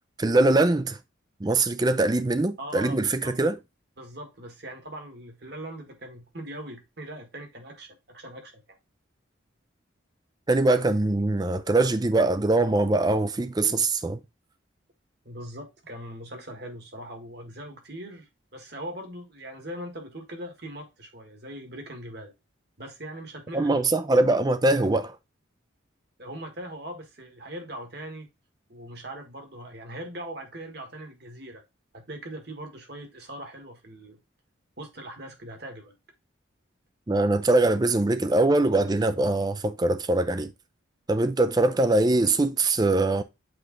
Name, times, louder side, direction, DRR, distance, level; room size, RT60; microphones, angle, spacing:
voice 1, 0.2-1.0 1.4-3.6 10.5-14.2 23.5-25.1 37.1-40.5 41.1-43.2, right 2 dB, 20° right, 0.4 m, -22 dB
voice 2, 2.6-3.3 4.0-8.8 15.2-22.3 22.8-23.8 26.2-28.3 28.7-31.6 31.9-34.2 34.8-35.9, right 1 dB, 55° right, 1.5 m, -40 dB
7.8 x 3.2 x 3.8 m
head